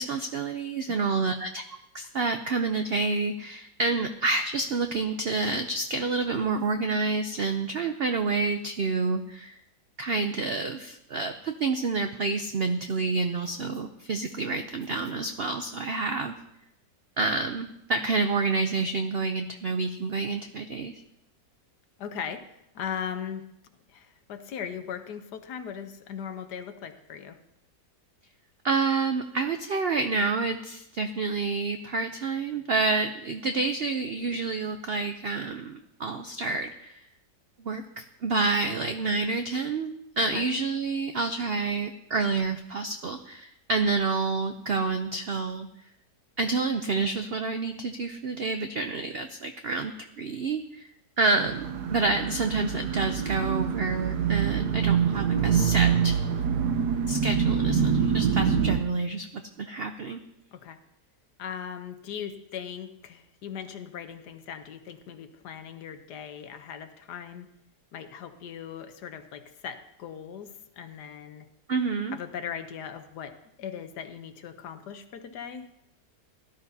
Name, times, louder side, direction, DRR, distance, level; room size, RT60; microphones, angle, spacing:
voice 1, 0.0-1.6 1.9-9.6 10.0-16.3 17.2-20.9 28.6-37.0 37.6-45.7 46.4-50.9 51.2-56.2 57.1-59.3 59.6-60.2 71.7-72.2, right 3 dB, 90° right, 7 dB, 0.5 m, -28 dB
voice 2, 22.0-22.4 22.7-23.5 23.9-27.4 40.3-40.5 60.5-60.8 61.4-67.5 67.9-71.5 72.1-75.7, left 8 dB, 75° left, 8 dB, 1.4 m, -39 dB
sound 1, 51.4-58.8, right 7 dB, 75° right, 1.4 m, -25 dB
17.0 x 12.0 x 2.8 m, 0.82 s
omnidirectional pair, 1.8 m